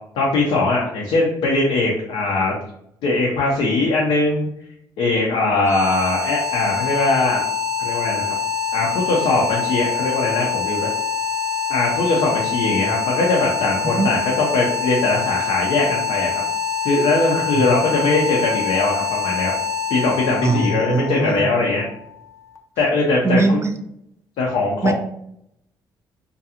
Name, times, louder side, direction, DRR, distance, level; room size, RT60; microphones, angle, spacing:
voice 1, 0.1-2.5 3.0-4.5 5.0-7.4 7.8-8.3 8.7-10.9 11.7-16.4 16.8-19.5 19.9-21.8 22.8-23.6 24.4-24.9, left 3 dB, 80° left, -2 dB, 0.6 m, -20 dB
sound 1, 5.5-22.4, left 6 dB, 30° left, 0.5 m, -25 dB
voice 2, 20.4-21.5 23.2-23.7 24.8-24.9, right 3 dB, 30° right, 7 dB, 0.4 m, -21 dB
2.5 x 2.3 x 2.8 m, 0.73 s
supercardioid pair, 70°, 9 cm